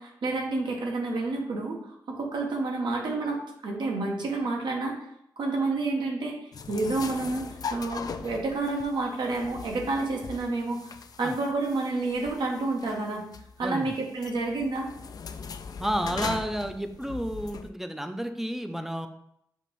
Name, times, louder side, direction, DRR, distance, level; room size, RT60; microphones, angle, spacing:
voice 1, 0.0-1.8 2.1-5.0 5.4-10.9 11.2-13.2 13.6-14.9, right 3 dB, 75° right, 1 dB, 1.0 m, -29 dB
sound 1, 6.5-17.7, left 5 dB, 55° left, 0.3 m, -40 dB
voice 2, 15.8-19.1, equal, 5° right, 7 dB, 0.5 m, -31 dB
6.7 x 2.5 x 3.1 m, 0.76 s
cardioid pair, 55°, 8 cm